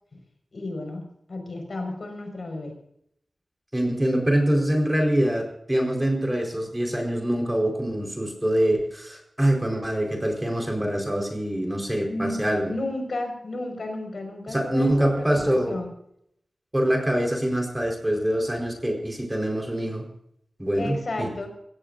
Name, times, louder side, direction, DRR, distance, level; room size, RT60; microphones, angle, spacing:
voice 1, 0.5-2.7 12.1-15.9 20.8-21.5, left 2 dB, 60° left, 3 dB, 5.3 m, -33 dB
voice 2, 3.7-12.7 14.5-15.8 16.7-20.1 20.6-21.3, right 1 dB, 15° right, 1 dB, 4.4 m, -24 dB
24.5 x 17.0 x 2.6 m, 0.73 s
wide cardioid pair, 105°, 0 cm